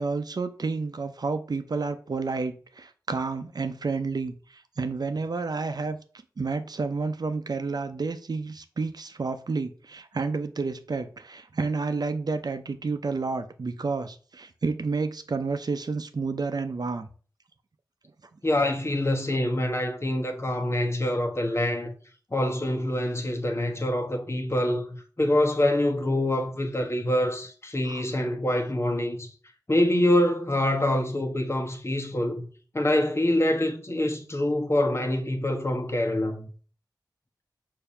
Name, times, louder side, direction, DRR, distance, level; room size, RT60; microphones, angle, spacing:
voice 1, 0.0-6.0 6.4-17.1 27.9-28.0, right 4 dB, 65° right, 0.7 m, -30 dB
voice 2, 18.4-21.9 22.3-29.3 29.7-32.5 32.7-36.5, left 1 dB, 35° left, 1.2 m, -25 dB
6.8 x 2.8 x 5.5 m
wide cardioid pair, 55°, 7 cm